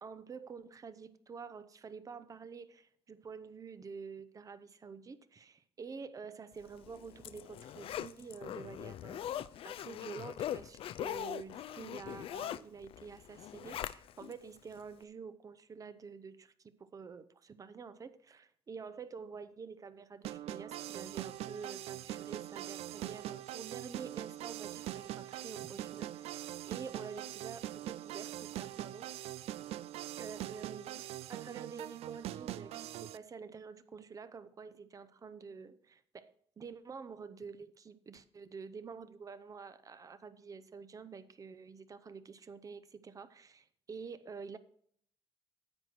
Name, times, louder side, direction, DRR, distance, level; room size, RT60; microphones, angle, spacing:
voice 1, 0.0-9.3 9.6-29.1 30.2-44.6, right 5 dB, 35° right, 14 dB, 0.7 m, -48 dB
Zipper (clothing), 6.7-14.3 14.8-14.9, left 11 dB, 65° left, 0.4 m, -41 dB
sound 1, 20.2-33.2, right 13 dB, 85° right, 0.4 m, -42 dB
9.7 x 7.9 x 4.4 m, 0.63 s
cardioid pair, 115°, 10 cm